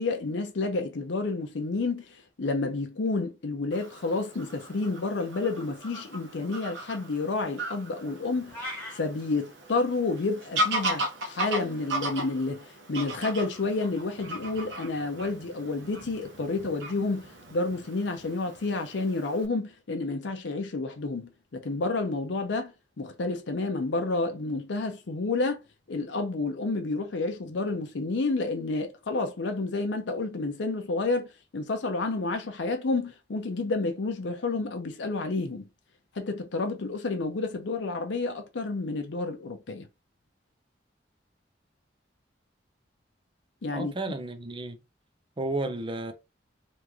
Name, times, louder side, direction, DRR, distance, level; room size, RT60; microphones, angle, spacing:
voice 1, 0.0-8.6 8.9-25.6 25.9-31.3 31.5-35.7 36.2-39.9 43.6-43.9, left 3 dB, 75° left, 0.6 m, -30 dB
Fowl / Bird vocalization bird call bird song, 3.7-19.4, right 1 dB, 75° right, 0.9 m, -37 dB
sound 1, 8.5-9.0, left 1 dB, 10° left, 1.4 m, -37 dB
voice 2, 43.7-44.8 45.4-46.1, right 2 dB, 30° right, 0.5 m, -32 dB
3.1 x 2.5 x 3.5 m
head